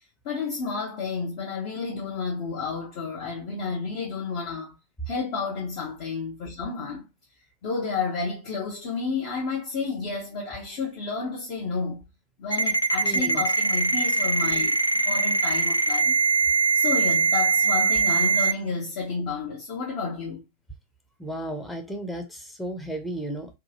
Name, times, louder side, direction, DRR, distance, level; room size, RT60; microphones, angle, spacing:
voice 1, 0.2-4.8 5.1-7.0 7.6-12.0 12.4-14.8 15.0-16.2 16.7-20.4, left 4 dB, 45° left, 0.9 m, -31 dB
Ringtone, 12.5-18.5, right 4 dB, 85° left, 0.3 m, -22 dB
voice 2, 13.0-13.5 21.2-23.6, right 1 dB, 5° left, 0.7 m, -34 dB
2.9 x 2.3 x 2.7 m
figure-of-eight pair, 90°, 0 cm